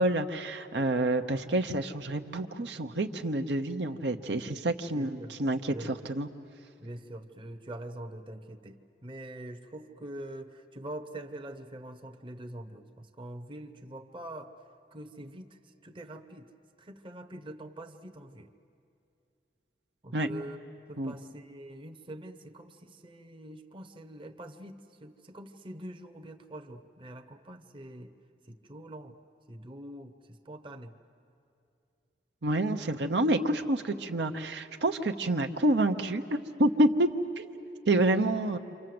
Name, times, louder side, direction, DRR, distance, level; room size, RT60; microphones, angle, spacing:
voice 1, 0.0-6.3 20.1-20.3 21.0-21.1 32.4-37.1 37.4-37.5 37.9-38.6, right 1 dB, 70° right, 6 dB, 0.9 m, -28 dB
voice 2, 4.9-5.3 5.7-6.1 6.8-14.5 14.9-16.5 16.8-18.5 20.0-20.6 20.9-28.1 28.5-29.1 29.5-30.9, right 1 dB, 30° right, 5 dB, 1.0 m, -44 dB
28.5 x 26.0 x 7.8 m, 2.6 s
head